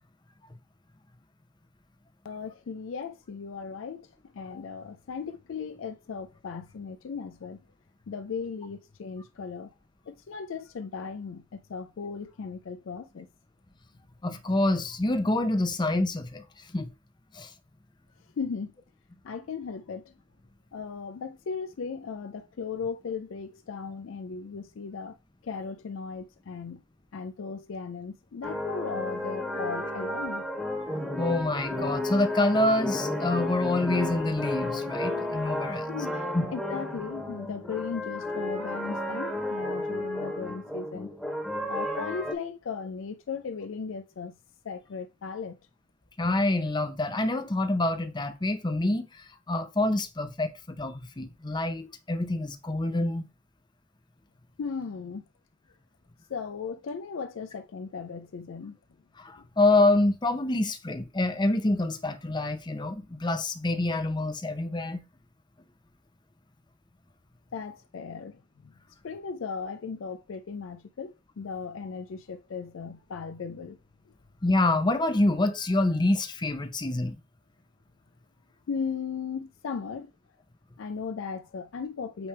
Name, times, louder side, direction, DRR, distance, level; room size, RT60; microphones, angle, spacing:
voice 1, 2.2-7.6 8.1-9.7 10.1-13.3 18.4-18.7 19.2-20.1 20.7-25.2 25.4-26.8 27.1-30.4 35.9-41.1 41.7-44.4 44.6-45.6 54.6-55.2 56.3-58.8 67.5-68.7 69.0-73.8 78.7-80.1 80.8-82.3, left 5 dB, 80° left, 0.4 m, -37 dB
voice 2, 14.2-16.4 16.7-16.9 17.3-17.5 31.2-35.9 36.3-36.5 46.2-53.3 59.2-65.0 74.4-77.2, left 2 dB, 20° left, 0.7 m, -26 dB
sound 1, 28.4-42.3, left 1 dB, ahead, 1.4 m, -32 dB
8.7 x 3.4 x 3.2 m
head